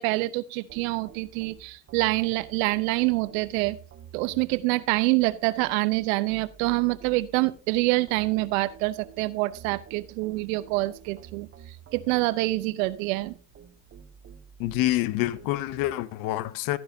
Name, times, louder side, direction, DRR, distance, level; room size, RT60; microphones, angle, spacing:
voice 1, 0.0-3.8 4.1-11.5 11.9-13.3, right 21 dB, 75° right, 0.8 m, -26 dB
sound 1, 0.7-15.9, right 8 dB, 35° right, 1.4 m, -50 dB
voice 2, 14.6-16.8, left 15 dB, 55° left, 0.7 m, -27 dB
13.0 x 10.5 x 2.7 m
supercardioid pair, 120°, 40 cm